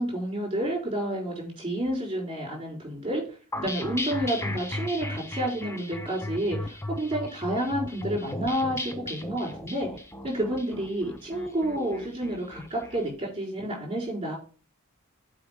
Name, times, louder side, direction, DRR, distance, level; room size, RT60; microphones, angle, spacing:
voice 1, 0.0-3.2 3.6-9.9 10.2-14.4, right 1 dB, 25° right, -4 dB, 4.2 m, -30 dB
sound 1, 3.5-13.0, left 1 dB, 10° left, 0.7 m, -36 dB
7.9 x 4.9 x 5.0 m, 0.39 s
head